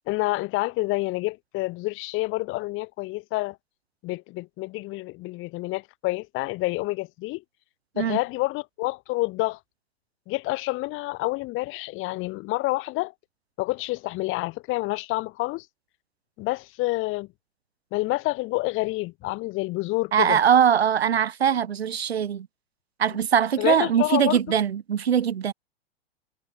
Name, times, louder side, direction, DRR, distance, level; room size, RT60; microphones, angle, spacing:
voice 1, 0.1-3.6 4.0-7.4 8.0-9.6 10.3-13.1 13.6-15.7 16.4-17.3 17.9-20.4 23.6-24.4, left 21 dB, 40° left, 6.2 m, -28 dB
voice 2, 20.1-22.5 23.0-25.5, right 8 dB, 80° right, 6.4 m, -22 dB
hypercardioid pair, 110°, 31 cm